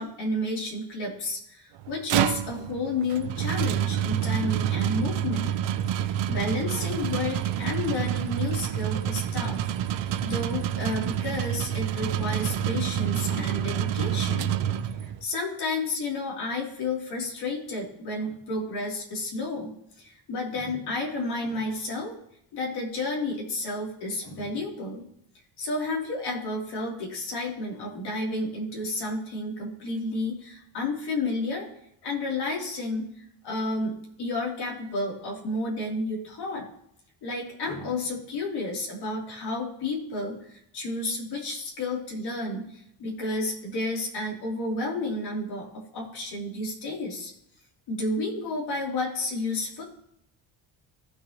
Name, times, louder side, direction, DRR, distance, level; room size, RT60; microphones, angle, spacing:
voice 1, 0.0-5.5 5.9-14.5 15.0-22.2 22.5-25.0 25.6-31.7 32.0-33.1 33.4-36.7 37.2-47.3 47.9-49.8, left 2 dB, 60° left, -2 dB, 3.4 m, -31 dB
sound 1, 1.8-15.2, right 10 dB, 90° right, 0.8 m, -28 dB
16.0 x 6.6 x 3.1 m, 0.75 s
cardioid pair, 170°, 43 cm